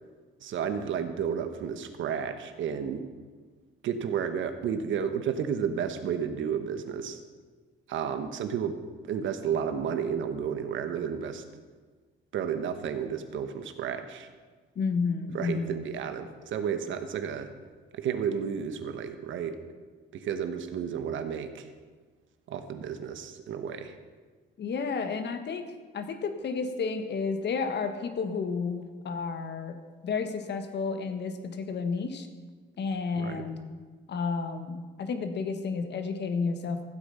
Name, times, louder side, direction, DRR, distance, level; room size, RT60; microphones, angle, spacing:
voice 1, 0.4-3.1 3.8-7.2 7.9-8.8 9.0-11.4 12.3-14.3 15.3-17.5 17.9-19.6 20.1-21.7 22.5-24.0 33.2-33.4, right 7 dB, 75° right, 8 dB, 1.2 m, -32 dB
voice 2, 14.7-15.8 24.6-25.6 25.9-29.8 30.0-32.3 32.8-33.6 34.1-36.8, left 5 dB, 60° left, 7 dB, 1.5 m, -31 dB
15.0 x 8.2 x 5.6 m, 1.4 s
cardioid pair, 90°, 20 cm